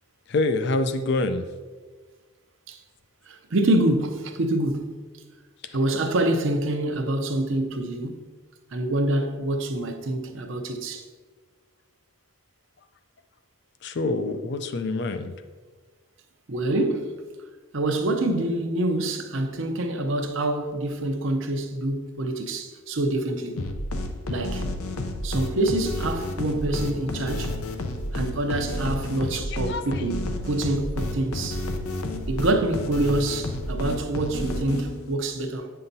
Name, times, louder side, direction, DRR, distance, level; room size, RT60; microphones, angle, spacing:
voice 1, 0.3-1.4 13.8-15.3 29.3-29.8, left 2 dB, 50° left, 0.4 m, -26 dB
voice 2, 3.3-4.9 5.7-8.3 8.7-11.0 16.5-17.1 17.7-23.6 24.3-24.7 25.2-27.5 28.1-31.6 32.3-35.7, right 1 dB, 60° right, 0.7 m, -26 dB
sound 1, 23.6-35.2, left 1 dB, 90° left, 0.7 m, -31 dB
8.8 x 5.6 x 2.7 m
head